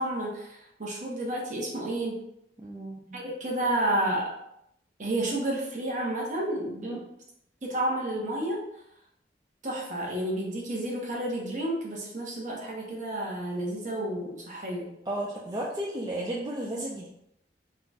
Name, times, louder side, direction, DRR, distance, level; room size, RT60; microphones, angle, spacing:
voice 1, 0.0-2.2 3.1-4.3 5.0-7.1 7.6-8.6 9.6-14.9, right 1 dB, 40° right, -3 dB, 1.1 m, -31 dB
voice 2, 2.6-3.2 6.8-7.0 15.1-17.1, right 1 dB, 20° right, -4 dB, 0.4 m, -33 dB
3.8 x 2.4 x 4.1 m, 0.77 s
head